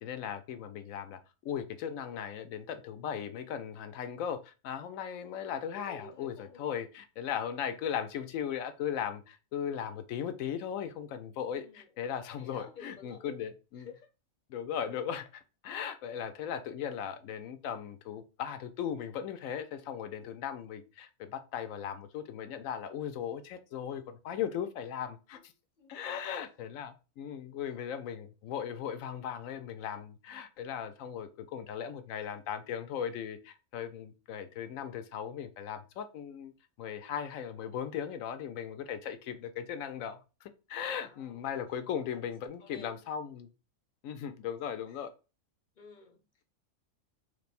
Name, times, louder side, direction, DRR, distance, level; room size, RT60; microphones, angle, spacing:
voice 1, 0.0-13.9 14.5-25.5 25.9-36.5 36.8-43.5 44.0-45.1, left 8 dB, 80° left, 1.0 m, -38 dB
voice 2, 5.2-6.6 11.4-11.9 12.4-13.4 13.7-14.1 25.3-25.5 25.8-26.5 40.9-41.5 42.0-42.3 42.6-43.0 44.9-45.0 45.8-46.4, left 4 dB, 45° left, 0.7 m, -53 dB
3.3 x 2.9 x 4.1 m
omnidirectional pair, 1.4 m